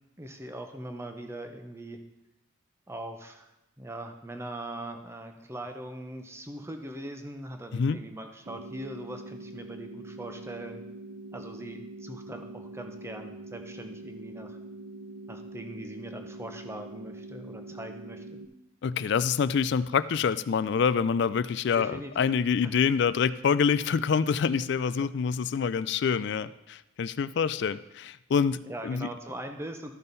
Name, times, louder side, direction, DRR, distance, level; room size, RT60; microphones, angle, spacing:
voice 1, 0.2-2.0 2.9-3.5 3.8-10.8 11.3-14.6 15.3-18.4 21.7-22.3 25.0-25.1 28.6-29.9, right 1 dB, 15° right, 5 dB, 0.7 m, -41 dB
sound 1, 8.5-18.5, right 2 dB, 50° right, 0.6 m, -44 dB
voice 2, 18.8-29.1, left 6 dB, 55° left, 16 dB, 0.3 m, -26 dB
13.5 x 5.6 x 4.0 m, 0.91 s
head